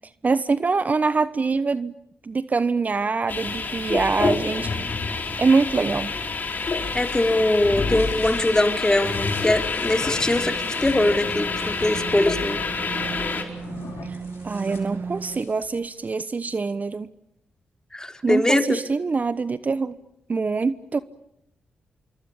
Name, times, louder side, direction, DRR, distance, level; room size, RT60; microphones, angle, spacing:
voice 1, 0.2-2.0 2.2-5.0 5.4-6.1 14.0-14.2 14.4-17.1 18.2-20.0 20.3-21.0, right 4 dB, 45° right, 15 dB, 1.0 m, -24 dB
sound 1, 3.3-13.4, left 4 dB, 50° left, 4.7 m, -27 dB
sound 2, 6.5-12.1 13.5-15.8, left 5 dB, 75° left, 5.0 m, -43 dB
voice 2, 6.9-12.6 17.9-18.8, left 1 dB, 15° left, 6 dB, 4.1 m, -22 dB
sound 3, 10.2-15.4, right 5 dB, 70° right, 2.5 m, -36 dB
26.0 x 24.0 x 8.8 m, 0.79 s
supercardioid pair, 45°, 4 cm